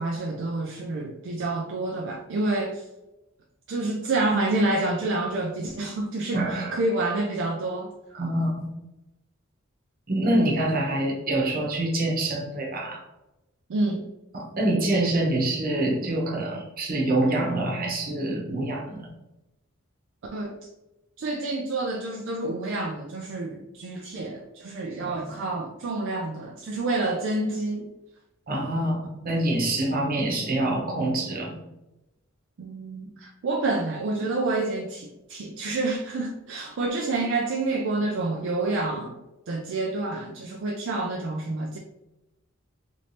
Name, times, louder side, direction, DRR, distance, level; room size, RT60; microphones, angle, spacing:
voice 1, 0.0-2.9 3.7-7.9 13.7-14.1 20.3-20.6 21.2-27.9 32.6-39.2 39.5-41.8, right 2 dB, 60° right, 0 dB, 0.4 m, -28 dB
voice 2, 6.3-6.7 8.1-8.7 10.1-13.0 14.3-19.0 25.0-25.3 28.5-29.0 29.2-31.6, right 1 dB, 45° right, -2 dB, 0.9 m, -26 dB
3.2 x 3.1 x 2.7 m, 0.97 s
head